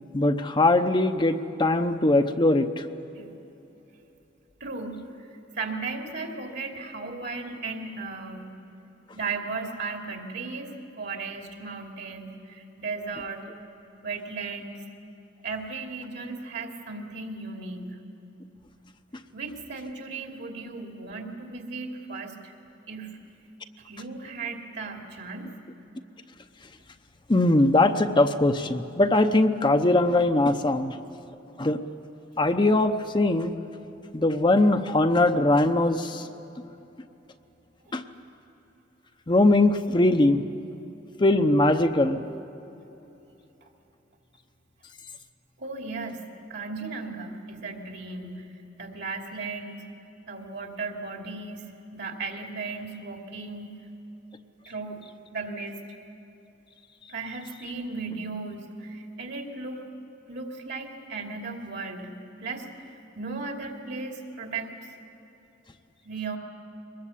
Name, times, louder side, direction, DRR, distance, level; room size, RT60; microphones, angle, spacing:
voice 1, 0.1-2.7 27.3-30.9 31.6-31.8 32.4-33.5 34.1-36.2 37.9-38.0 39.3-40.4 41.2-42.2, left 2 dB, 25° left, 7 dB, 0.8 m, -21 dB
voice 2, 4.6-5.3 5.6-8.5 9.1-10.7 11.0-13.5 14.0-14.8 15.4-18.0 19.3-22.5 22.9-23.2 23.9-25.5 37.9-38.0 45.6-46.2 46.5-48.5 48.8-49.9 50.3-53.8 54.7-55.8 57.1-59.8 60.3-62.1 62.4-62.6 63.2-64.7 66.0-66.4, right 4 dB, 65° right, 2 dB, 2.8 m, -36 dB
23.0 x 20.5 x 8.4 m, 3.0 s
head